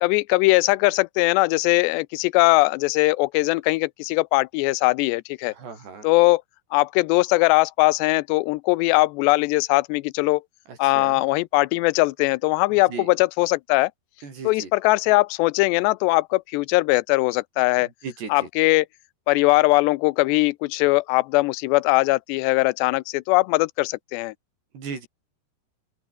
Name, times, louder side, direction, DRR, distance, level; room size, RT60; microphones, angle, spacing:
voice 1, 0.0-5.5 6.0-6.4 6.7-10.4 10.8-13.9 14.4-17.9 18.3-18.9 19.3-24.3, left 22 dB, 90° left, 2.8 m, -20 dB
voice 2, 5.5-6.1 10.7-11.2 12.7-13.1 14.2-14.7 17.8-18.5 24.7-25.1, right 5 dB, 75° right, 8.4 m, -37 dB
open air
omnidirectional pair, 4.8 m